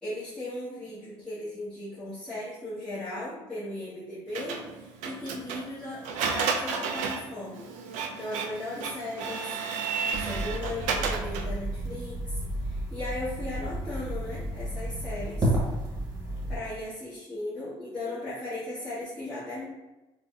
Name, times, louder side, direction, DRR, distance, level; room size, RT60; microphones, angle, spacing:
voice 1, 0.0-4.5 4.8-7.7 8.2-9.6 10.2-12.2 12.6-15.5 16.5-19.7, left 1 dB, 5° left, -15 dB, 1.2 m, -37 dB
Printer, 4.3-11.6, right 5 dB, 90° right, 0.4 m, -32 dB
sound 1, 10.1-16.6, right 1 dB, 30° right, 1.1 m, -32 dB
3.9 x 2.1 x 2.4 m, 1.1 s
cardioid pair, 105°, 12 cm